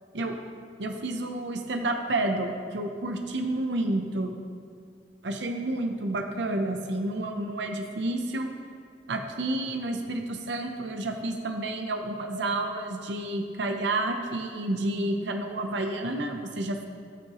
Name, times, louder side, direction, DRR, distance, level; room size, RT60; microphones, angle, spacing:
voice 1, 0.8-4.4 5.2-8.5 9.1-16.9, right 2 dB, 75° right, 4 dB, 0.7 m, -30 dB
17.5 x 6.0 x 3.1 m, 2.2 s
head